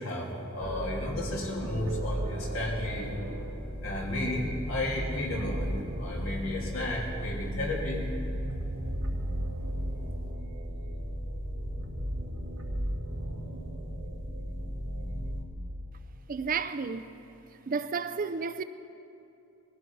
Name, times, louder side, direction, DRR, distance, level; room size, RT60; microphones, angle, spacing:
voice 1, 0.0-3.1 3.8-8.1, left 1 dB, 80° left, 3.1 m, -33 dB
sound 1, 0.6-15.4, equal, 60° right, 2.3 m, -35 dB
voice 2, 16.3-17.1 17.7-18.6, right 5 dB, 40° right, 0.5 m, -31 dB
19.5 x 15.5 x 4.7 m
head